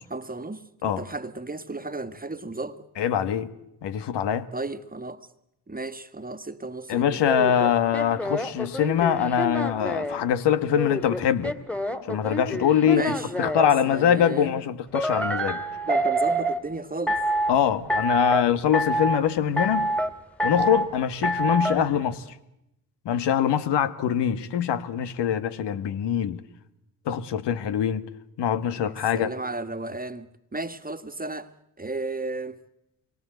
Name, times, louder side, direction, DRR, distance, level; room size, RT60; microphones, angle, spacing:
voice 1, 0.1-2.9 4.5-5.3 5.7-7.2 12.8-13.3 13.9-14.6 15.8-17.2 28.8-32.6, right 2 dB, 20° right, 1.9 m, -34 dB
voice 2, 3.0-3.5 3.8-4.5 6.9-11.6 12.1-13.0 13.4-15.6 17.5-19.9 20.4-22.2 23.1-26.4 27.1-28.1 28.4-29.3, left 9 dB, 65° left, 1.7 m, -23 dB
sound 1, 7.2-10.2 10.7-13.7 14.9-16.6 17.1-17.5 17.9-18.4 18.7-19.2 19.6-20.1 20.4-20.9 21.2-21.8, right 1 dB, 5° left, 2.8 m, -26 dB
27.5 x 23.5 x 8.0 m
hypercardioid pair, 40°, 45 cm